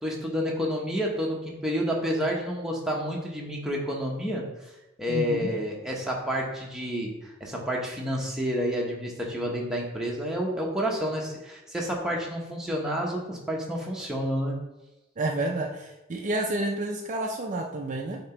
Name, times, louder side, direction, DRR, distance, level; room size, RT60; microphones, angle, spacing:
voice 1, 0.0-4.5 5.0-14.6, equal, ahead, -2 dB, 1.0 m, -29 dB
voice 2, 5.1-5.5 15.2-18.2, right 2 dB, 35° right, 1 dB, 0.5 m, -30 dB
7.4 x 2.9 x 4.4 m, 1.0 s
head